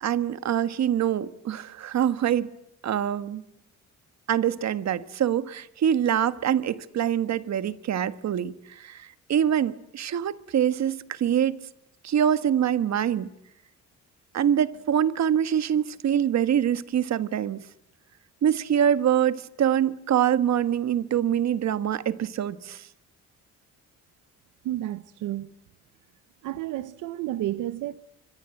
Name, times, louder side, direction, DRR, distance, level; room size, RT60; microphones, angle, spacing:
voice 1, 0.0-2.5 2.8-3.4 4.3-11.7 12.0-13.3 14.3-17.6 18.4-22.8, right 9 dB, 60° right, 1.5 m, -25 dB
voice 2, 24.6-25.5 26.4-28.0, right 14 dB, 90° right, 0.9 m, -31 dB
25.5 x 24.5 x 7.8 m
cardioid pair, 90°, 30 cm